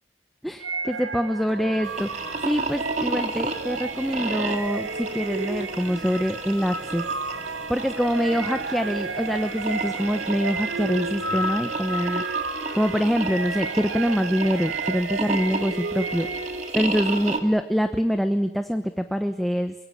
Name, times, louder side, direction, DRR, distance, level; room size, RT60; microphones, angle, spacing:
voice 1, 0.4-7.0 7.7-12.2 12.7-16.3 16.7-19.7, equal, ahead, 7 dB, 1.0 m, -25 dB
sound 1, 0.6-16.8, right 3 dB, 80° right, 1.6 m, -32 dB
sound 2, 1.4-12.1, right 1 dB, 55° right, 7.4 m, -48 dB
sound 3, 1.8-17.4, right 3 dB, 40° right, 2.7 m, -33 dB
24.5 x 22.5 x 8.8 m, 0.88 s
head